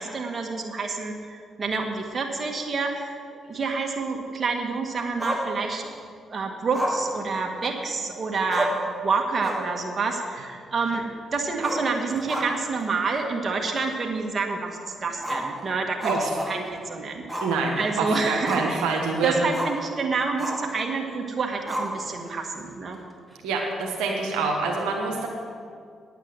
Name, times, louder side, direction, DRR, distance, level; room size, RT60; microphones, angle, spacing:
voice 1, 0.0-5.8 6.3-8.7 9.0-17.5 17.8-18.8 19.2-23.0, right 4 dB, 45° right, 2 dB, 1.9 m, -28 dB
Growling, 5.2-6.0 6.7-8.0 8.2-8.3 8.5-8.9 9.3-9.8 10.1-10.2 11.5-12.8 13.1-13.2 13.8-13.9 15.2-16.8 17.3-17.6 17.9-18.8 19.5-19.8 20.4-20.7 21.7-22.3, right 1 dB, 5° right, 2.5 m, -31 dB
voice 2, 17.4-19.5 23.4-25.3, right 3 dB, 85° right, 0 dB, 1.2 m, -26 dB
9.6 x 8.9 x 7.7 m, 2.2 s
supercardioid pair, 55°, 0 cm